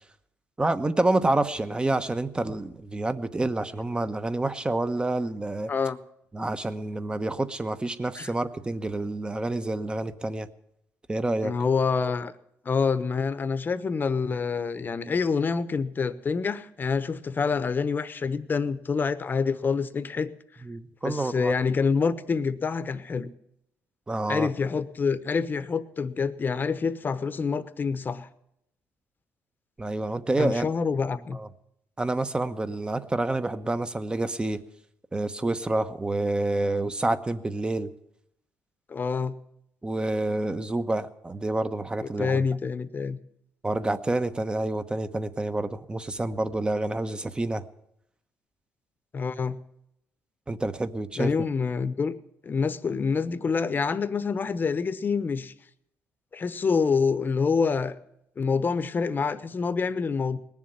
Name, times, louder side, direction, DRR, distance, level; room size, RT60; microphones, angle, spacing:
voice 1, 0.6-5.7 6.3-10.5 11.1-11.5 20.6-21.5 24.1-24.5 29.8-30.7 31.3-31.5 32.0-34.6 35.1-37.9 39.8-42.4 43.6-47.6 50.5-51.3, right 2 dB, 15° right, 11 dB, 1.0 m, -28 dB
voice 2, 11.4-12.3 12.6-20.3 21.0-23.3 24.3-28.3 30.4-31.4 38.9-39.3 42.0-43.2 49.1-49.6 51.2-52.1 52.4-55.5 56.3-57.9 58.4-60.4, left 5 dB, 35° left, 13 dB, 1.0 m, -27 dB
19.5 x 7.3 x 9.4 m, 0.77 s
cardioid pair, 90°, 6 cm